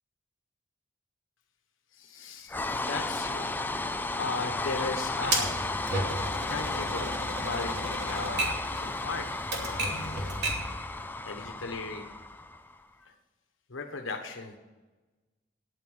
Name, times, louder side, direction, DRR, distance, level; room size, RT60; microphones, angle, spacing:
voice 1, 1.9-3.5 4.2-5.5 6.5-10.6 11.2-12.0 13.0-13.1 13.7-14.6, left 3 dB, 90° left, 3 dB, 1.2 m, -37 dB
sound 1, 2.5-12.8, left 2 dB, 10° left, 0.4 m, -34 dB
Typewriter, 5.3-10.7, right 2 dB, 55° right, 2.8 m, -33 dB
10.0 x 9.6 x 7.9 m, 1.2 s
head